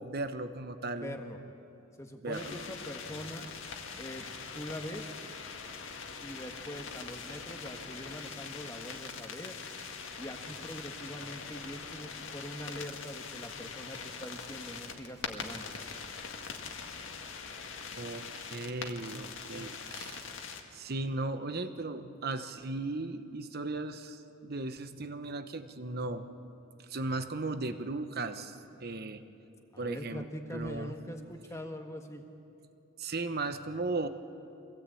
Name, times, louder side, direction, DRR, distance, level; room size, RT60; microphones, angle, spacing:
voice 1, 0.0-1.2 2.2-2.7 17.9-20.3 20.7-26.3 26.9-29.2 29.8-30.9 33.0-34.1, right 2 dB, 50° right, 10 dB, 1.0 m, -36 dB
voice 2, 1.0-1.4 2.0-3.5 4.0-4.3 4.5-5.3 6.2-9.6 10.2-15.6 29.7-32.2, equal, 15° left, 4 dB, 1.5 m, -43 dB
sound 1, 2.3-20.6, left 5 dB, 65° left, 1.9 m, -43 dB
24.5 x 17.0 x 8.5 m, 2.7 s
head